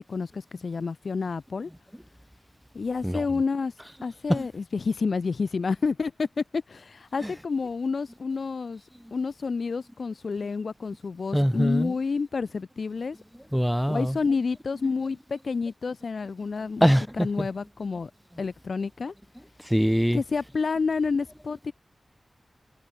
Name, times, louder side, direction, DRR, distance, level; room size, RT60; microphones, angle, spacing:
voice 1, 0.1-1.7 2.7-3.7 4.0-8.8 9.1-13.2 13.9-18.1 18.4-19.1 20.1-21.7, left 4 dB, 75° left, 2.3 m, -29 dB
voice 2, 11.3-11.9 13.5-14.1 16.8-17.5 19.7-20.2, equal, ahead, 0.6 m, -23 dB
cardioid pair, 45°, 0 cm